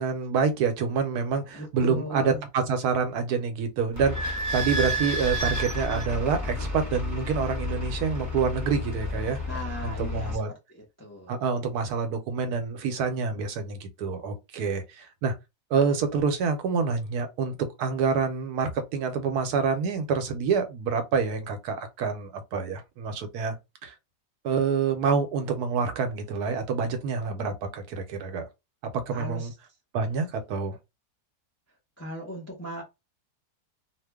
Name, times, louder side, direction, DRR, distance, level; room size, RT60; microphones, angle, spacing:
voice 1, 0.0-9.4 9.8-10.5 11.3-15.3 15.7-23.6 23.8-23.9 24.4-28.5 28.9-29.5 29.9-30.8, right 5 dB, 80° right, 1.2 m, -27 dB
voice 2, 1.5-2.5 9.5-10.4 10.7-11.4 29.1-29.5 32.0-32.8, equal, 20° left, 0.4 m, -37 dB
Idling / Squeak, 3.9-10.3, left 1 dB, 15° right, 0.7 m, -31 dB
2.9 x 2.2 x 3.4 m
omnidirectional pair, 1.7 m